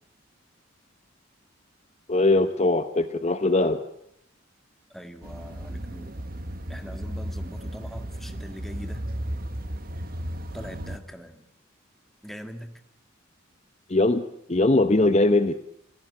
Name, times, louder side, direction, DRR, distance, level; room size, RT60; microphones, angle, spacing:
voice 1, 2.1-3.8 13.9-15.5, left 2 dB, 30° left, 10 dB, 0.9 m, -21 dB
voice 2, 4.9-6.2 6.7-9.1 10.5-11.5 12.2-12.8, equal, ahead, 7 dB, 1.8 m, -42 dB
sound 1, 5.2-11.0, right 1 dB, 45° right, 1.4 m, -35 dB
28.0 x 16.5 x 8.7 m, 0.74 s
head